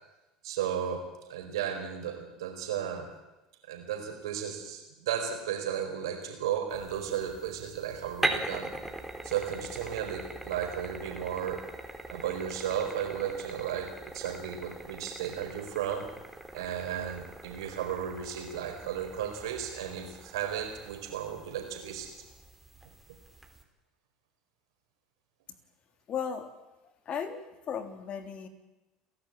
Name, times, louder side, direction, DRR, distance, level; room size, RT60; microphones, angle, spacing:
voice 1, 0.4-3.1 3.6-8.7 9.2-11.6 12.1-16.1 16.5-22.1, right 9 dB, 80° right, 5 dB, 4.5 m, -34 dB
sound 1, 6.7-23.6, right 1 dB, 5° right, 3.8 m, -41 dB
voice 2, 26.1-26.5 27.0-28.5, left 7 dB, 45° left, 8 dB, 3.1 m, -35 dB
30.0 x 12.0 x 8.9 m, 1.0 s
hypercardioid pair, 75°, 3 cm